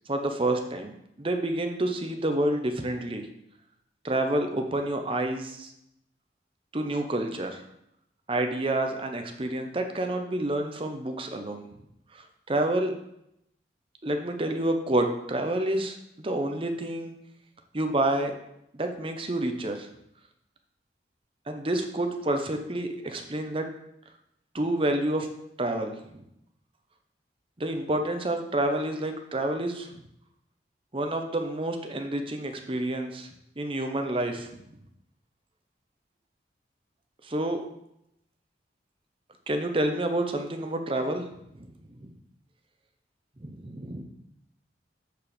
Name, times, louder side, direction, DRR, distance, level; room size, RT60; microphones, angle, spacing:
voice 1, 0.1-3.3 4.0-5.7 6.7-7.6 8.3-11.7 12.1-12.9 14.0-17.1 17.7-18.4 18.7-19.9 21.5-23.7 24.5-25.3 25.6-26.2 27.6-29.9 30.9-33.3 33.6-34.5 37.2-37.6 39.5-41.3 41.5-41.7 42.0-42.1 43.4-44.0, right 1 dB, 30° right, 5 dB, 0.8 m, -28 dB
7.9 x 4.9 x 5.1 m, 0.78 s
head